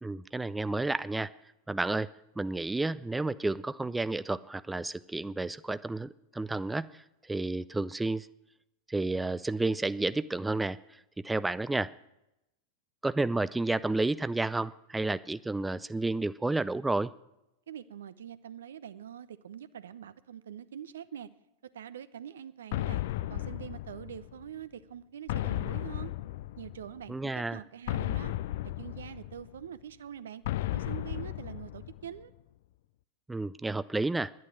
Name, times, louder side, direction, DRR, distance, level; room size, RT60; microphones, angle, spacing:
voice 1, 0.0-1.3 1.7-2.1 2.4-8.3 8.9-11.9 13.0-17.1 27.1-27.6 33.3-34.3, right 2 dB, 10° right, 16 dB, 0.4 m, -31 dB
voice 2, 17.7-21.3 21.7-23.0 23.3-26.1 26.6-28.3 28.8-30.4 30.7-32.3, right 9 dB, 65° right, 15 dB, 0.7 m, -44 dB
sound 1, 22.7-24.5 25.3-27.0 27.9-29.7 30.5-32.2, left 15 dB, 55° left, 0.4 m, -35 dB
11.0 x 10.0 x 9.4 m, 0.87 s
figure-of-eight pair, 90°, 0 cm